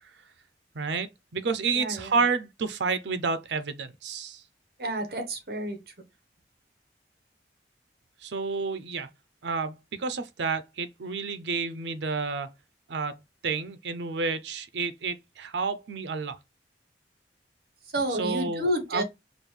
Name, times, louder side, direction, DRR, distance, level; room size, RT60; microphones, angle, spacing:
voice 1, 0.7-4.4 8.2-9.1 9.4-12.5 12.9-13.2 13.4-16.3 18.2-19.0, right 4 dB, 85° right, 0.6 m, -30 dB
voice 2, 1.7-2.2 4.8-5.9 17.9-19.0, right 1 dB, 60° right, 1.1 m, -30 dB
5.1 x 2.3 x 3.2 m
head